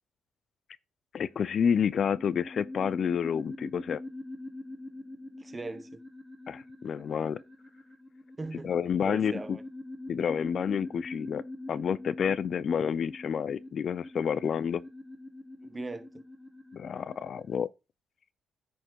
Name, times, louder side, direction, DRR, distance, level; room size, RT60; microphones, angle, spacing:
voice 1, 1.1-4.0 6.5-7.4 8.6-9.6 10.1-11.4 11.7-14.8 16.7-17.7, left 7 dB, 55° left, 0.4 m, -29 dB
sound 1, 1.3-17.6, left 2 dB, 5° left, 2.8 m, -44 dB
voice 2, 5.4-6.0 8.4-8.7 9.0-9.6 15.6-16.1, right 2 dB, 20° right, 0.9 m, -39 dB
9.8 x 4.6 x 4.6 m
cardioid pair, 90°, 0 cm